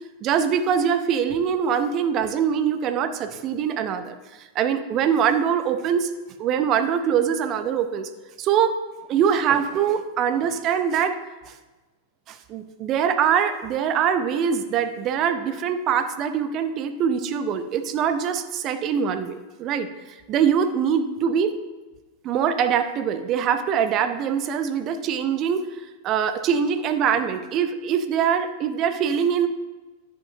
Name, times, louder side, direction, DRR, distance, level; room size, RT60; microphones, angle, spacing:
voice 1, 0.2-6.1 6.4-8.1 8.4-8.7 9.1-11.1 12.3-19.9 20.3-21.5 22.2-25.6 26.0-29.5, right 8 dB, 35° right, 9 dB, 0.6 m, -23 dB
11.0 x 6.5 x 2.7 m, 1.2 s
figure-of-eight pair, 90°, 0 cm